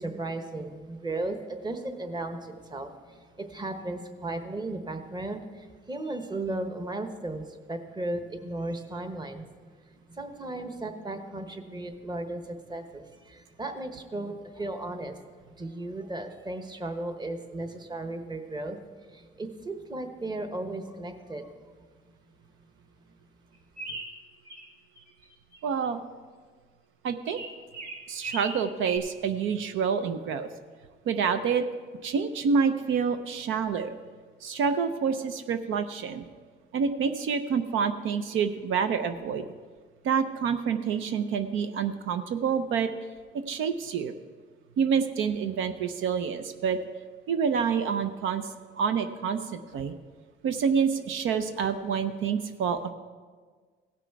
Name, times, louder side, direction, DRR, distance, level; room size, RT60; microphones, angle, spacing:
voice 1, 0.0-2.9 3.4-5.4 5.9-9.4 10.1-12.4 12.7-15.1 15.6-18.8 19.1-21.5, right 2 dB, 20° right, 7 dB, 1.1 m, -35 dB
sound 1, 23.8-24.7 25.0-25.6 27.2-29.0, right 3 dB, 50° right, 2.2 m, -38 dB
voice 2, 25.6-26.0 27.0-27.4 28.1-30.5 31.1-31.7 32.0-34.0 34.4-36.2 36.7-39.4 40.0-42.9 43.5-44.1 44.8-46.8 47.3-48.4 48.8-49.9 50.4-52.8, right 6 dB, 80° right, 9 dB, 0.6 m, -27 dB
16.5 x 6.1 x 4.6 m, 1.5 s
cardioid pair, 90°, 20 cm